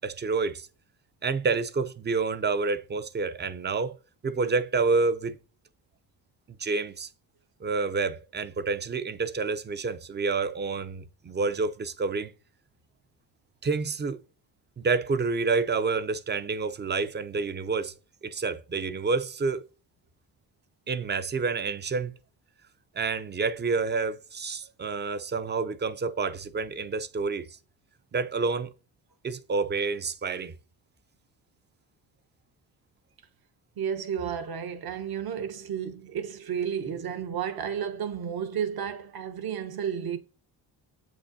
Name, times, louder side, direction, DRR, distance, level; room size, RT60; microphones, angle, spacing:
voice 1, 0.0-0.7 1.2-4.0 4.2-5.4 6.6-7.1 7.6-12.3 13.6-14.2 14.8-17.9 18.2-19.6 20.9-22.1 23.0-27.5 28.1-28.7 29.2-30.5, right 4 dB, 25° right, 0.5 m, -28 dB
voice 2, 33.8-40.2, right 8 dB, 60° right, 1.0 m, -32 dB
7.6 x 6.3 x 2.7 m
cardioid pair, 85°, 42 cm